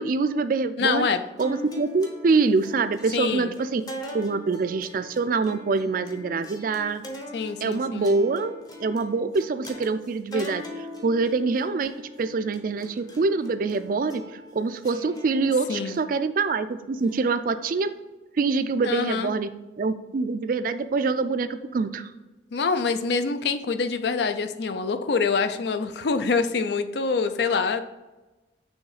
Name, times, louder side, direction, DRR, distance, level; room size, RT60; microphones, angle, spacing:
voice 1, 0.0-1.1 1.4-3.8 4.1-7.0 7.6-17.9 18.3-19.5 19.8-22.1, right 4 dB, 50° right, 11 dB, 0.3 m, -25 dB
voice 2, 0.8-1.2 3.1-3.5 7.3-8.1 15.7-16.0 18.8-19.3 22.5-27.8, left 4 dB, 65° left, 10 dB, 0.4 m, -25 dB
sound 1, 1.4-17.9, left 1 dB, 20° left, 0.7 m, -42 dB
6.3 x 3.1 x 4.8 m, 1.1 s
head